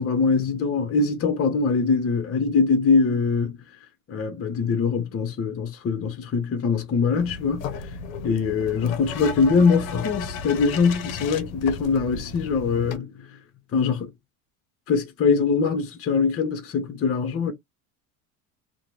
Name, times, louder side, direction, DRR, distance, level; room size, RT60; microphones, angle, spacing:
voice 1, 0.0-3.5 4.1-7.7 8.2-13.1 13.7-14.1 14.9-17.5, left 5 dB, 35° left, 0.8 m, -22 dB
sound 1, 7.1-13.0, left 5 dB, 85° left, 0.7 m, -34 dB
2.5 x 2.2 x 3.1 m
hypercardioid pair, 85°, 40 cm